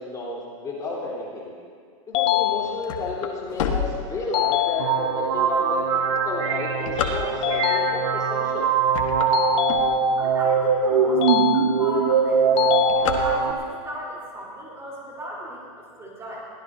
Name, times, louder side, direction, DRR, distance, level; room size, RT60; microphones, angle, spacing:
voice 1, 0.0-1.5 2.1-8.7, left 2 dB, 20° left, -5 dB, 3.9 m, -32 dB
sound 1, 2.1-3.2 4.3-5.3 7.4-8.4 9.3-10.4 11.2-12.1 12.6-13.6, left 15 dB, 35° left, 0.5 m, -25 dB
sound 2, 2.4-4.7 5.2-5.3 6.0-7.7 8.3-8.6 8.8-10.4 10.9-11.0 11.2-11.3 11.6-12.0 12.2-13.8, left 7 dB, 70° left, 1.6 m, -30 dB
sound 3, 4.8-13.5, right 6 dB, 65° right, 1.4 m, -22 dB
voice 2, 10.2-16.5, equal, 15° right, -4 dB, 4.1 m, -36 dB
22.0 x 16.5 x 2.8 m, 2.1 s
hypercardioid pair, 130°, 18 cm